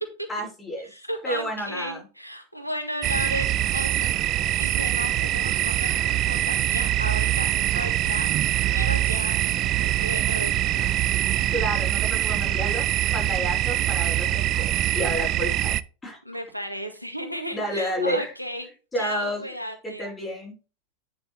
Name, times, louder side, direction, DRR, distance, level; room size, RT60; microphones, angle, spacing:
voice 1, 0.3-0.9 1.2-2.0 11.5-15.7 16.0-16.2 17.5-18.3 18.9-19.4 20.0-20.5, equal, 10° left, -1 dB, 5.8 m, -30 dB
voice 2, 0.8-4.2 4.6-11.1 16.3-18.7 19.0-20.1, equal, 90° left, 5 dB, 1.8 m, -34 dB
sound 1, 3.0-15.8, right 14 dB, 35° right, 0.4 m, -24 dB
9.6 x 6.9 x 3.4 m, 0.31 s
figure-of-eight pair, 90°, 0 cm